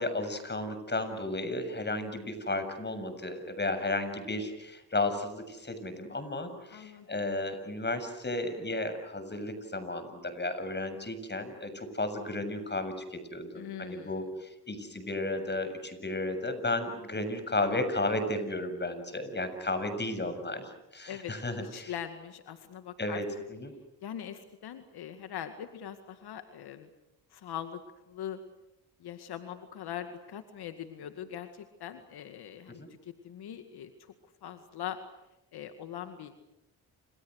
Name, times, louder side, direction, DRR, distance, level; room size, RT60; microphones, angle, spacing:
voice 1, 0.0-21.9 23.0-23.2 23.5-23.7 32.7-32.9, left 2 dB, 25° left, 10 dB, 7.3 m, -33 dB
voice 2, 6.7-7.1 13.6-14.2 21.1-21.3 21.6-23.4 24.0-26.9 27.3-27.8 28.1-28.4 29.0-34.1 34.4-35.0 35.5-36.3, left 10 dB, 75° left, 8 dB, 2.1 m, -41 dB
30.0 x 28.0 x 6.5 m, 0.91 s
supercardioid pair, 65°, 39 cm